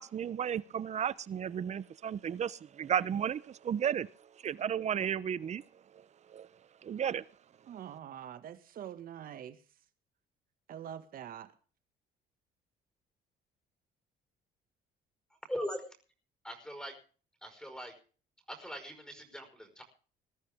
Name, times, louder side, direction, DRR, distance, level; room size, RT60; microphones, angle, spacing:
voice 1, 0.0-4.1 4.4-5.6 5.9-6.0 6.3-6.5 6.8-7.2, right 8 dB, 40° right, 0.9 m, -33 dB
voice 2, 7.7-9.6 10.7-11.5, right 10 dB, 60° right, 2.0 m, -44 dB
voice 3, 15.5-15.8 16.4-16.9 17.4-17.9 18.5-19.8, equal, 5° left, 5.3 m, -40 dB
20.5 x 13.0 x 3.7 m
cardioid pair, 110°, 17 cm